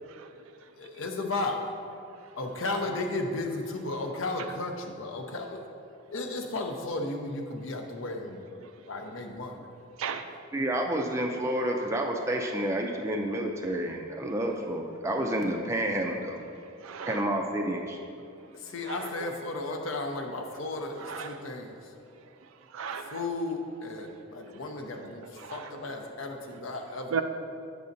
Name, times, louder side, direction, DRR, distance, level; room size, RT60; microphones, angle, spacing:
voice 1, 0.0-0.7 4.4-4.5 8.6-8.7 10.0-10.3 13.8-13.9 16.8-17.3 18.8-19.3 21.0-21.5 22.7-23.3 24.9-25.9 27.1-27.2, right 6 dB, 75° right, 8 dB, 0.4 m, -37 dB
voice 2, 0.8-1.7 2.4-5.6 6.1-8.4 8.9-9.6 18.6-21.7 23.1-27.1, left 2 dB, 65° left, 3 dB, 0.6 m, -34 dB
voice 3, 10.5-16.4 17.0-18.0, right 1 dB, 15° right, 1 dB, 0.4 m, -29 dB
8.3 x 6.9 x 2.6 m, 2.6 s
head